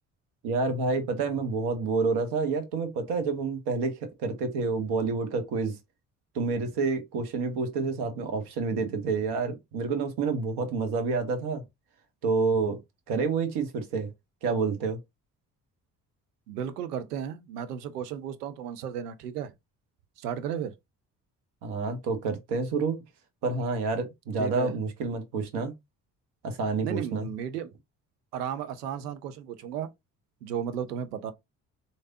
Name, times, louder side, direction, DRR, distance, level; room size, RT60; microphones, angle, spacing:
voice 1, 0.4-5.8 6.3-11.6 12.2-12.8 13.1-14.1 14.4-15.0 21.6-23.0 23.4-25.7 26.4-27.3, right 4 dB, 55° right, 1.0 m, -28 dB
voice 2, 16.5-19.5 20.2-20.7 24.4-24.7 26.8-27.7 28.3-29.9 30.4-31.3, right 8 dB, 80° right, 0.5 m, -34 dB
3.1 x 2.7 x 2.6 m
figure-of-eight pair, 45°, 46 cm